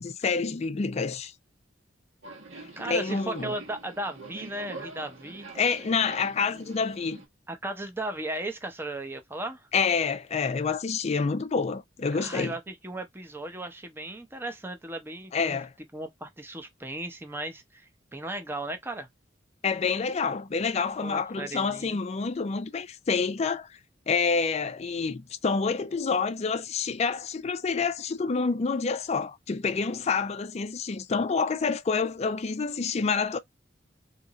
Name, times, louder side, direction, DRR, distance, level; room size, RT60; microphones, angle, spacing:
voice 1, 0.0-1.3 2.8-3.5 5.6-7.2 9.7-12.5 15.3-15.7 19.6-23.8 24.1-33.4, left 5 dB, 35° left, 0.4 m, -28 dB
Subway metro underground, 2.2-7.3, right 3 dB, 85° right, 1.4 m, -44 dB
voice 2, 2.8-5.5 7.5-9.6 12.1-15.6 15.9-19.1 21.0-22.0, right 2 dB, 10° right, 0.6 m, -36 dB
2.9 x 2.5 x 3.9 m
head